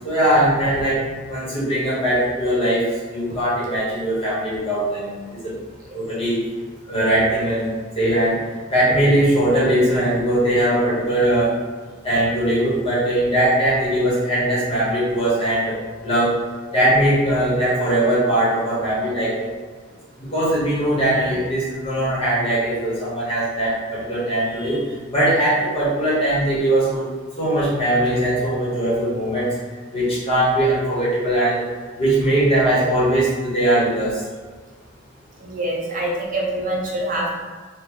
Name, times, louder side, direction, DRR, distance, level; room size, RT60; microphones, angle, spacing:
voice 1, 0.0-1.0 1.3-2.8 3.1-5.5 5.9-6.4 6.9-7.7 7.9-8.4 8.7-11.6 12.0-15.7 16.0-16.3 16.7-19.5 20.2-24.8 25.1-27.1 27.4-29.5 29.9-31.6 32.0-34.2, right 1 dB, 30° left, -8 dB, 1.2 m, -20 dB
voice 2, 35.4-37.4, right 1 dB, 40° right, -3 dB, 0.6 m, -25 dB
3.8 x 2.4 x 3.0 m, 1.4 s
head